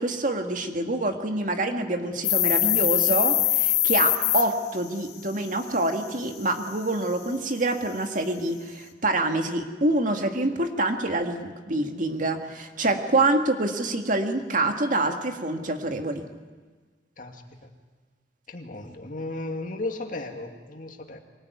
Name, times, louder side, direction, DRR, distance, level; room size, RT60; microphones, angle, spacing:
voice 1, 0.0-16.2, right 2 dB, 50° right, 5 dB, 2.0 m, -26 dB
sound 1, 2.2-4.4, left 14 dB, 70° left, 2.2 m, -22 dB
voice 2, 17.2-17.7 18.5-21.2, left 2 dB, 50° left, 4 dB, 2.3 m, -35 dB
24.0 x 19.5 x 9.5 m, 1.4 s
head